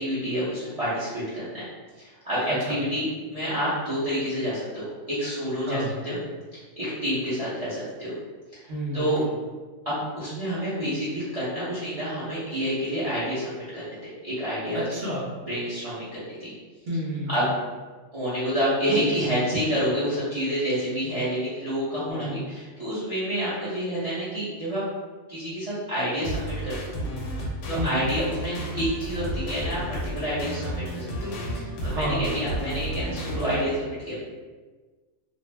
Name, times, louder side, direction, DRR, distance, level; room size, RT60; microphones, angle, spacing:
voice 1, 0.0-1.7 2.0-6.2 6.5-8.1 8.5-9.2 9.8-14.0 14.2-14.9 15.4-16.5 17.3-17.5 18.1-24.8 25.3-26.9 27.4-34.1, equal, 30° right, -11 dB, 0.7 m, -28 dB
voice 2, 5.6-6.0 8.7-9.1 14.7-15.3 16.9-17.4 22.1-22.4 27.8-28.0 31.8-32.4, equal, 65° right, -5 dB, 1.0 m, -30 dB
sound 1, 26.2-33.6, equal, 65° left, 0.8 m, -32 dB
2.6 x 2.0 x 3.2 m, 1.3 s
omnidirectional pair, 1.4 m